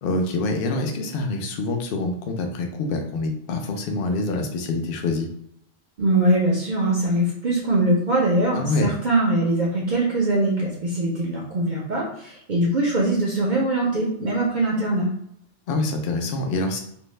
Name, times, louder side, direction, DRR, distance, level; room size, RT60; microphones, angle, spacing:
voice 1, 0.0-5.3 8.6-8.9 15.7-16.8, left 2 dB, 65° left, 4 dB, 0.6 m, -25 dB
voice 2, 6.0-15.1, right 1 dB, 55° right, -3 dB, 0.5 m, -22 dB
2.6 x 2.1 x 3.1 m, 0.72 s
omnidirectional pair, 1.3 m